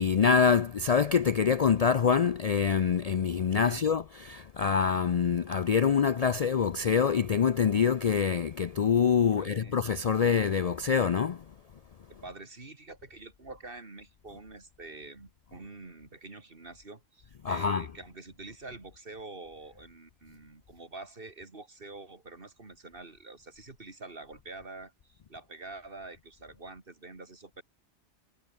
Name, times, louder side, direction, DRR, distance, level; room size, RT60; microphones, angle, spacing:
voice 1, 0.0-11.4 17.4-17.9, left 6 dB, 45° left, 0.5 m, -25 dB
voice 2, 9.3-9.8 12.1-27.6, right 3 dB, 55° right, 3.0 m, -46 dB
omnidirectional pair, 1.1 m